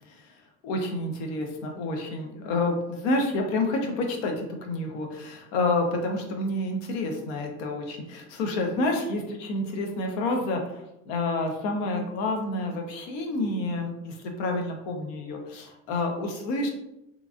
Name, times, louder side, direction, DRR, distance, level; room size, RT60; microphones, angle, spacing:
voice 1, 0.1-0.4 0.6-16.7, left 2 dB, 90° left, 2 dB, 0.7 m, -29 dB
3.0 x 2.4 x 2.4 m, 0.85 s
cardioid pair, 170°, 33 cm